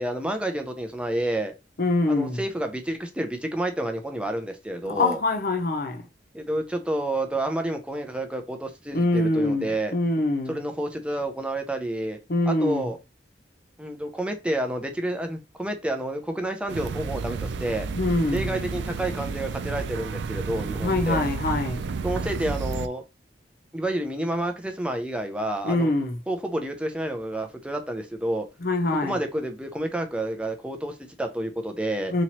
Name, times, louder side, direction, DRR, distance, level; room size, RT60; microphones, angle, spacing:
voice 1, 0.0-1.5 2.1-5.2 6.3-9.9 10.5-12.2 12.5-13.0 13.8-17.9 18.3-21.3 22.0-23.0 23.7-25.9 26.3-28.5 29.0-32.1, right 1 dB, 5° right, 0.5 m, -29 dB
voice 2, 1.8-2.4 4.8-6.0 8.9-10.5 12.3-12.9 17.9-18.5 20.8-21.8 25.6-26.2 28.6-29.2 32.1-32.2, left 2 dB, 55° left, 0.6 m, -24 dB
sound 1, 16.7-22.9, right 4 dB, 85° right, 0.4 m, -31 dB
4.1 x 2.9 x 2.9 m
head